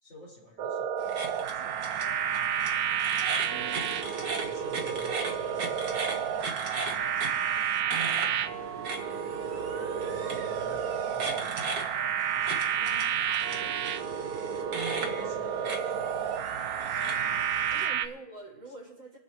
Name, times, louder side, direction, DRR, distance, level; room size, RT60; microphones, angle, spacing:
voice 1, 0.0-2.1 3.4-3.9 4.2-10.2 10.5-11.9 14.1-16.2 17.9-18.0 18.7-18.8, left 1 dB, 35° left, -3 dB, 5.3 m, -53 dB
sound 1, 0.6-18.1, right 8 dB, 85° right, 0.8 m, -31 dB
sound 2, 1.0-17.9, right 3 dB, 45° right, 1.8 m, -38 dB
voice 2, 3.5-3.9 12.8-14.1 17.7-19.2, right 3 dB, 65° right, -8 dB, 6.9 m, -47 dB
27.5 x 9.4 x 3.1 m, 0.93 s
omnidirectional pair, 2.4 m